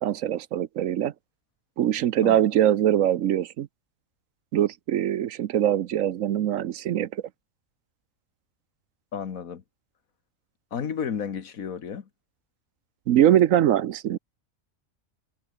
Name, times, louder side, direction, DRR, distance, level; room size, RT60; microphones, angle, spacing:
voice 1, 0.0-1.1 1.8-3.7 4.5-7.2 13.1-14.2, right 11 dB, 70° right, 1.1 m, -22 dB
voice 2, 9.1-9.6 10.7-12.1, left 7 dB, 80° left, 1.8 m, -32 dB
omnidirectional pair, 1.4 m